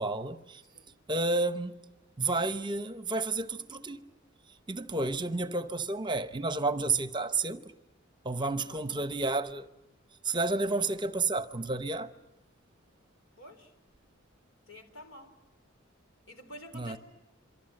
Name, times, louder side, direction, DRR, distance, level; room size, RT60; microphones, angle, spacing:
voice 1, 0.0-0.6 1.1-1.7 2.2-4.1 4.7-7.6 8.2-9.7 10.2-12.1 16.7-17.0, right 3 dB, 25° right, 0.8 m, -31 dB
voice 2, 13.4-13.7 14.7-15.3 16.3-17.0, left 1 dB, 75° left, 4.1 m, -49 dB
27.0 x 24.0 x 7.8 m
head